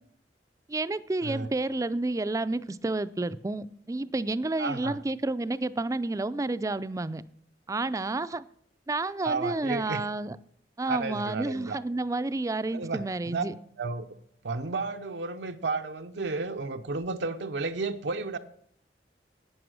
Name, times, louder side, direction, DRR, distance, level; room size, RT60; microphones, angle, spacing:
voice 1, 0.7-7.2 7.7-8.4 8.9-10.4 10.8-13.5, right 2 dB, 20° right, 14 dB, 0.4 m, -30 dB
voice 2, 4.6-5.0 9.2-10.0 10.9-11.8 12.7-13.4 13.8-14.1 14.4-18.4, right 3 dB, 80° right, 6 dB, 0.7 m, -32 dB
11.0 x 8.8 x 6.3 m, 0.66 s
head